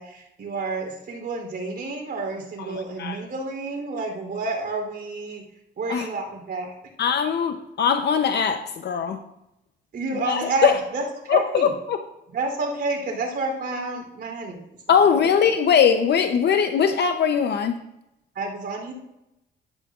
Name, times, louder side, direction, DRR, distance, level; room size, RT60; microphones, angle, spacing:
voice 1, 0.0-5.4 5.8-6.7 9.9-11.7 12.3-14.6 15.2-15.3 18.3-18.9, right 3 dB, 55° right, 1 dB, 3.3 m, -29 dB
voice 2, 7.0-9.2 10.3-10.7 11.3-12.0 14.9-17.8, left 7 dB, 60° left, 8 dB, 0.7 m, -21 dB
12.0 x 10.0 x 2.4 m, 0.87 s
cardioid pair, 90°, 20 cm